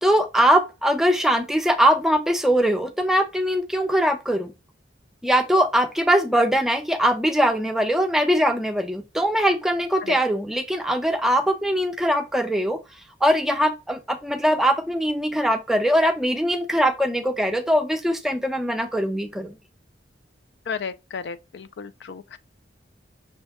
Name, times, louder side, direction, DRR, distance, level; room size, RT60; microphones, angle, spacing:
voice 1, 0.0-4.5 5.2-12.8 13.2-19.6, equal, ahead, 0.5 m, -21 dB
voice 2, 20.7-22.4, left 5 dB, 65° left, 0.4 m, -33 dB
6.1 x 2.2 x 3.5 m
head